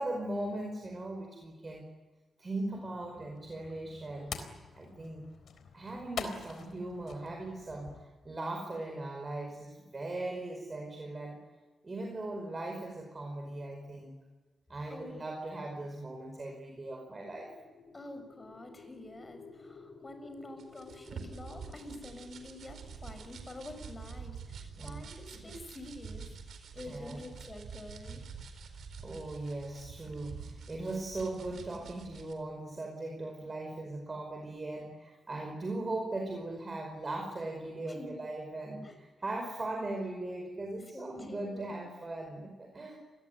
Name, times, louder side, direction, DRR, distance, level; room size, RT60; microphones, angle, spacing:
voice 1, 0.0-1.9 2.4-4.4 4.7-5.3 5.7-11.4 11.8-14.2 14.7-17.5 24.7-25.0 25.3-25.5 26.8-27.2 29.0-43.0, right 2 dB, 30° right, 2 dB, 5.1 m, -39 dB
sound 1, 2.7-8.1, left 5 dB, 75° left, 3.9 m, -45 dB
voice 2, 14.9-15.2 17.9-26.3 26.7-28.2 37.9-38.3 38.8-38.9 40.9-41.8, left 1 dB, 25° left, 7 dB, 6.5 m, -47 dB
sound 2, 17.0-25.1, left 4 dB, 55° left, 6.2 m, -55 dB
sound 3, 20.6-32.3, right 5 dB, 75° right, 4.3 m, -47 dB
28.0 x 20.5 x 9.2 m, 1.3 s
cardioid pair, 110°, 0 cm